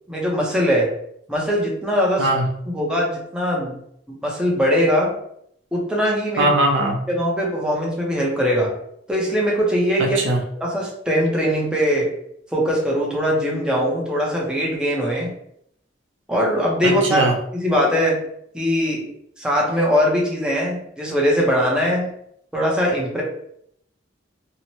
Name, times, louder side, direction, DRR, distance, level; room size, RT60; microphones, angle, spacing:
voice 1, 0.1-0.9 1.3-2.3 2.7-3.8 4.1-5.1 5.7-6.5 7.1-8.7 9.1-10.2 10.6-12.1 12.5-15.3 16.3-17.3 17.5-18.2 18.5-19.1 19.4-22.1 22.5-23.2, equal, 5° right, -4 dB, 0.5 m, -21 dB
voice 2, 6.4-7.0 10.0-10.4 16.8-17.3, right 1 dB, 75° right, 1 dB, 0.5 m, -20 dB
2.7 x 2.0 x 2.9 m, 0.71 s
head